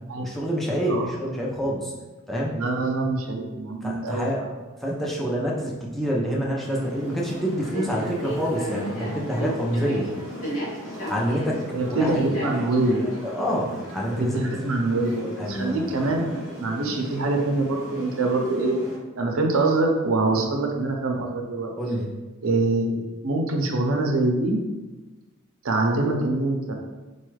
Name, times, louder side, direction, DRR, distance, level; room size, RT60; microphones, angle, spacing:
voice 1, 0.1-1.9 2.3-2.6 3.8-4.4 4.8-10.1 11.1-11.6 11.9-12.2 12.5-12.8 13.0-14.4 15.4-16.1 20.3-20.5 21.8-22.1, equal, ahead, -4 dB, 0.5 m, -27 dB
voice 2, 2.5-4.5 11.7-13.0 14.2-16.2 16.6-18.8 19.2-21.7 22.4-24.6 25.6-26.7, right 2 dB, 80° right, 1 dB, 0.6 m, -24 dB
sound 1, 6.6-19.0, equal, 85° left, 1.0 m, -35 dB
4.1 x 2.3 x 3.1 m, 1.2 s
head